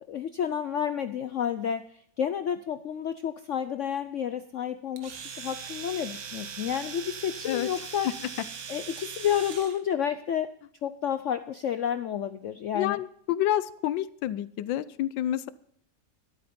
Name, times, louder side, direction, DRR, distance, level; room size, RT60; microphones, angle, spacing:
voice 1, 0.1-8.1 8.7-10.5 10.8-13.0, left 9 dB, 70° left, 10 dB, 0.7 m, -30 dB
Domestic sounds home sounds, 5.0-9.8, right 6 dB, 55° right, 1.4 m, -40 dB
voice 2, 12.7-15.5, left 12 dB, 90° left, 16 dB, 1.3 m, -28 dB
12.5 x 12.5 x 4.3 m, 0.65 s
omnidirectional pair, 2.0 m